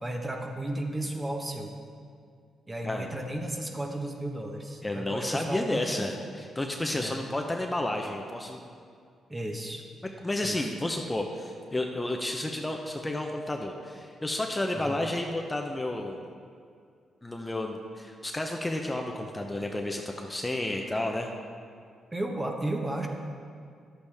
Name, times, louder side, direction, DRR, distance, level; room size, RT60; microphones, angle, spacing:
voice 1, 0.0-1.7 2.7-6.3 6.9-7.1 9.3-9.9 10.4-10.7 14.7-15.0 22.1-23.1, right 1 dB, 20° right, 2 dB, 1.2 m, -34 dB
voice 2, 4.8-8.6 10.2-16.3 17.2-21.3, left 1 dB, 15° left, 2 dB, 0.7 m, -31 dB
11.5 x 8.2 x 3.5 m, 2.3 s
cardioid pair, 70°, 0 cm